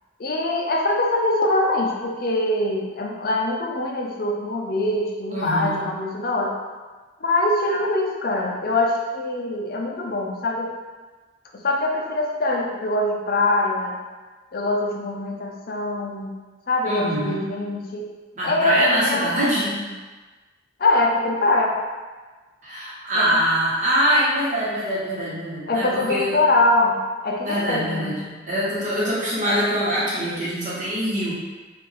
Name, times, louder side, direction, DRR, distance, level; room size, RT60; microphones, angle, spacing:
voice 1, 0.2-6.6 7.2-10.7 11.5-14.0 14.5-16.4 16.7-18.1 18.4-19.4 20.8-21.8 23.2-23.4 25.7-28.1, left 2 dB, 50° left, 0 dB, 0.5 m, -23 dB
voice 2, 5.3-5.9 16.8-17.5 18.3-19.9 22.6-26.4 27.4-31.3, equal, 40° right, -8 dB, 1.1 m, -24 dB
3.3 x 2.5 x 3.7 m, 1.3 s
head